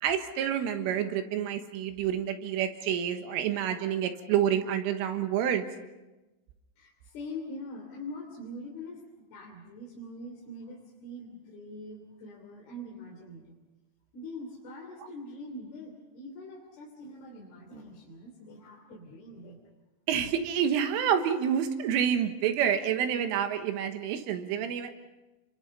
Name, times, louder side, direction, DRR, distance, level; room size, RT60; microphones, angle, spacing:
voice 1, 0.0-5.6 20.1-25.0, right 9 dB, 90° right, 7 dB, 3.9 m, -28 dB
voice 2, 6.8-13.5 14.1-19.6, left 1 dB, 55° left, -2 dB, 4.8 m, -43 dB
30.0 x 24.0 x 5.5 m, 1.1 s
omnidirectional pair, 5.7 m